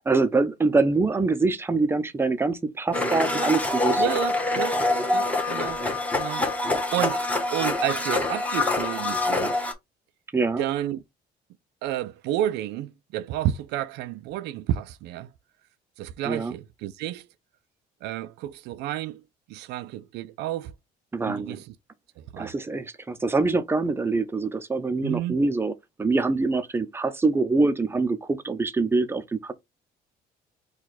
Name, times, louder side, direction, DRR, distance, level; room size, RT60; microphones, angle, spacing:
voice 1, 0.1-4.0 10.3-10.6 16.3-16.5 21.1-21.6 22.4-25.7 26.0-29.5, right 3 dB, 15° right, 0.7 m, -24 dB
Domestic sounds home sounds, 2.9-9.7, left 2 dB, 10° left, 1.1 m, -25 dB
voice 2, 4.0-4.8 5.1-5.9 6.1-9.6 10.6-11.0 11.8-15.3 16.0-17.3 18.0-19.2 19.5-20.7 21.3-21.7 22.2-22.5 25.0-25.4, right 13 dB, 85° right, 0.5 m, -31 dB
4.7 x 2.4 x 4.1 m
cardioid pair, 110°, 17 cm